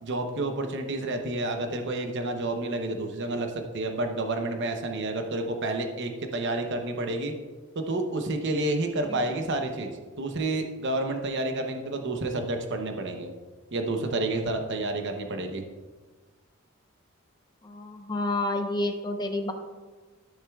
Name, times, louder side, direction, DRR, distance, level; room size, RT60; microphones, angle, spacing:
voice 1, 0.0-7.3 7.8-9.9 10.2-13.3 13.7-15.6, right 2 dB, 60° right, 5 dB, 0.8 m, -29 dB
voice 2, 17.6-19.5, left 2 dB, 20° left, 4 dB, 0.8 m, -29 dB
13.5 x 6.5 x 2.4 m, 1.3 s
head